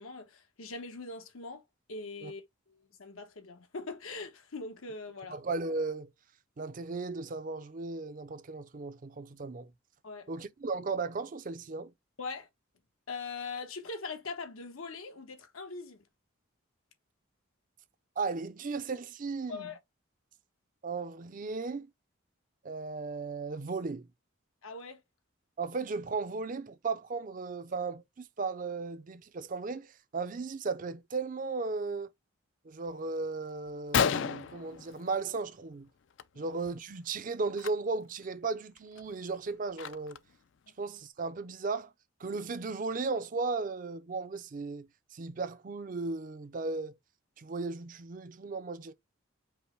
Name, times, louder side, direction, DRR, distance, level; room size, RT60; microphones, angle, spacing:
voice 1, 0.0-1.6 1.9-5.4 10.0-10.3 12.2-12.5 13.1-16.0 19.5-19.8 24.6-25.0 36.3-36.5, left 3 dB, 85° left, 1.1 m, -41 dB
voice 2, 5.3-6.1 6.6-9.7 10.3-11.9 18.2-19.7 20.8-21.9 22.6-24.1 25.6-32.1 32.6-35.9 36.4-40.2 40.8-41.9 42.2-46.9 47.4-48.9, right 4 dB, 40° right, 0.5 m, -36 dB
Gunshot gunfire, 33.3-33.4 33.7-33.8 33.9-35.6 35.9-36.2 36.5-36.7 37.5-37.7 38.2-38.3 38.8-40.4, left 7 dB, 60° left, 0.4 m, -32 dB
5.4 x 2.1 x 4.5 m
head